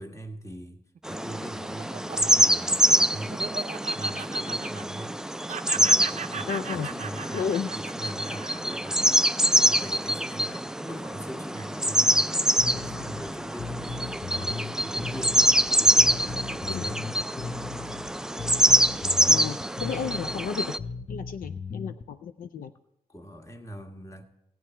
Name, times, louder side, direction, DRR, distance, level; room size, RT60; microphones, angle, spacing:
voice 1, 0.0-3.6 3.9-5.2 5.7-15.5 15.8-17.9 22.5-22.7 23.1-24.2, right 1 dB, 20° left, 5 dB, 1.6 m, -42 dB
Laughter, 1.0-5.2 5.5-9.9, right 7 dB, 55° right, 0.5 m, -39 dB
sound 1, 1.1-20.8, right 1 dB, 5° right, 0.3 m, -25 dB
voice 2, 6.5-6.9 7.3-7.7 16.7-16.9 19.3-20.7 21.1-22.7, left 7 dB, 75° left, 9 dB, 0.5 m, -32 dB
Bass guitar, 12.6-22.0, left 5 dB, 40° left, 0.7 m, -37 dB
14.5 x 9.3 x 4.4 m, 0.87 s
cardioid pair, 60°, 15 cm